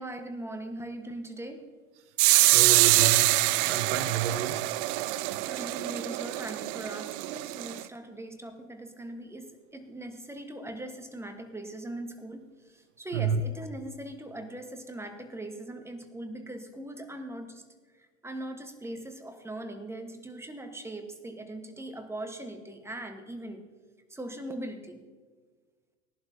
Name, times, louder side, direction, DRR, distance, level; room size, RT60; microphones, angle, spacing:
voice 1, 0.0-1.7 5.5-17.6 17.9-23.7 24.1-25.0, right 1 dB, 5° right, 6 dB, 1.2 m, -40 dB
sound 1, 2.2-7.8, right 20 dB, 45° right, 0.4 m, -25 dB
voice 2, 2.5-4.6 13.1-13.4, right 8 dB, 65° right, 11 dB, 0.9 m, -30 dB
19.0 x 11.0 x 2.8 m, 1.5 s
hypercardioid pair, 85°, 38 cm